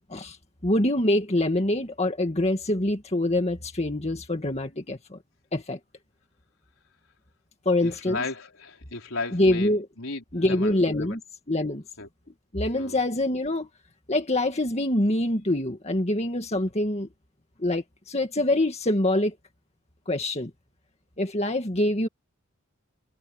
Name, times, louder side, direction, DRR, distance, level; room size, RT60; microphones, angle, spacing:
voice 1, 0.6-5.2 5.5-5.8 7.7-8.2 9.3-9.9 10.3-11.2 11.5-11.8 12.5-13.7 14.1-17.1 17.6-19.4 20.1-20.5 21.2-22.1, left 1 dB, 30° left, 2.0 m, -25 dB
voice 2, 7.8-11.2 12.0-12.1 12.8-13.0, left 3 dB, 75° left, 4.1 m, -35 dB
head